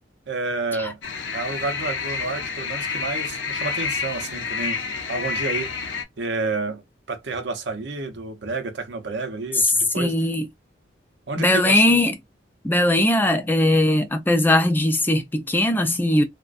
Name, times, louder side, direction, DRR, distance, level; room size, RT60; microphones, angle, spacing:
voice 1, 0.3-1.0 1.3-4.8 5.1-5.7 6.2-6.8 7.1-10.2 11.3-12.0, right 3 dB, 65° right, 0.6 m, -30 dB
sound 1, 1.0-6.0, left 5 dB, 75° left, 0.5 m, -29 dB
voice 2, 9.5-10.5 11.4-12.1 12.6-16.2, left 1 dB, 10° left, 0.4 m, -19 dB
2.4 x 2.1 x 2.4 m
head